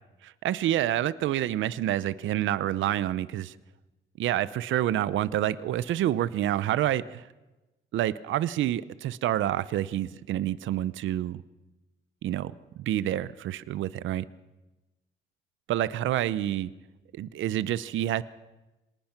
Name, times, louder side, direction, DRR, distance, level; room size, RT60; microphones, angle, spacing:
voice 1, 0.2-3.6 4.2-7.2 7.9-11.4 12.2-12.5 12.8-14.2 15.7-16.7 17.1-18.2, right 12 dB, 75° right, 16 dB, 0.7 m, -28 dB
26.0 x 19.0 x 6.0 m, 1.1 s
cardioid pair, 90°, 20 cm